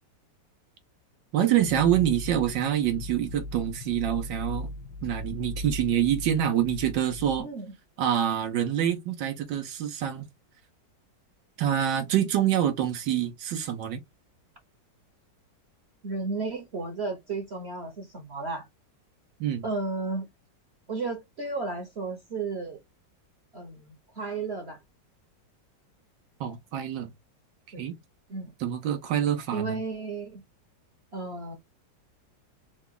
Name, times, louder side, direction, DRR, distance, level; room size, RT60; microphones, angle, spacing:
voice 1, 1.3-4.7 5.0-7.5 8.0-10.2 11.6-14.0 19.4-19.6 26.4-27.1 27.8-28.0 28.6-29.8, right 10 dB, 80° right, 1.4 m, -26 dB
sound 1, 1.6-7.4, left 2 dB, 80° left, 1.2 m, -38 dB
voice 2, 7.4-7.7 16.0-18.7 19.6-20.3 20.9-22.8 23.5-24.8 27.7-27.9 28.3-28.5 29.5-30.4 31.1-31.6, right 3 dB, 45° right, 1.0 m, -33 dB
3.9 x 2.3 x 3.6 m
omnidirectional pair, 1.9 m